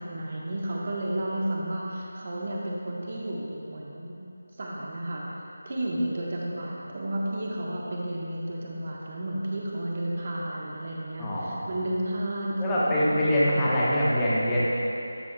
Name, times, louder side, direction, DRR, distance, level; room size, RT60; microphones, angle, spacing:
voice 1, 0.0-4.1 4.6-5.2 5.6-13.6 14.5-14.6, right 1 dB, 45° right, -3 dB, 1.3 m, -32 dB
voice 2, 11.2-11.7 12.6-14.6, equal, 10° left, -9 dB, 1.1 m, -24 dB
12.5 x 6.0 x 2.4 m, 2.9 s
figure-of-eight pair, 165°, 0 cm